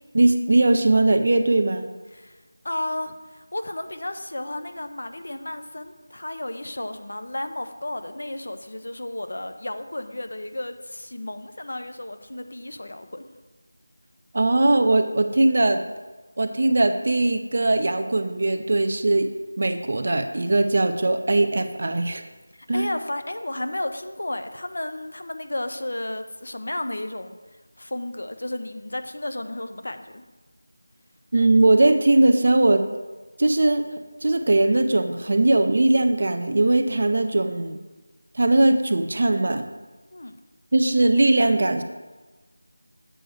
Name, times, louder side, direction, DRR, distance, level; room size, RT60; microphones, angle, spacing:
voice 1, 0.1-1.9 14.3-15.8 16.4-19.3 19.6-22.2 22.7-22.9 31.3-32.8 33.4-33.9 34.2-37.8 38.3-39.6 40.7-41.8, right 2 dB, 45° right, 8 dB, 0.6 m, -20 dB
voice 2, 2.1-13.2 22.5-30.2 40.1-40.4, left 1 dB, 65° left, 8 dB, 0.8 m, -33 dB
7.8 x 4.6 x 6.4 m, 1.2 s
figure-of-eight pair, 175°, 0 cm